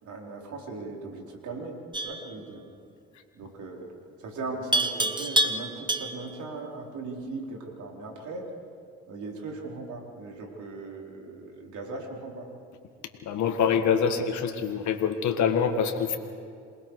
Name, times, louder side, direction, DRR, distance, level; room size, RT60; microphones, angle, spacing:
voice 1, 0.0-2.7 3.3-3.9 4.2-8.5 9.1-12.5, right 3 dB, 70° right, 0 dB, 4.3 m, -38 dB
Livestock farm animals working animals, 1.9-2.3 4.7-6.4, right 1 dB, 15° right, 1.4 m, -27 dB
voice 2, 13.3-16.2, left 7 dB, 65° left, 5 dB, 1.8 m, -25 dB
27.5 x 20.0 x 4.8 m, 2.3 s
hypercardioid pair, 55°, 31 cm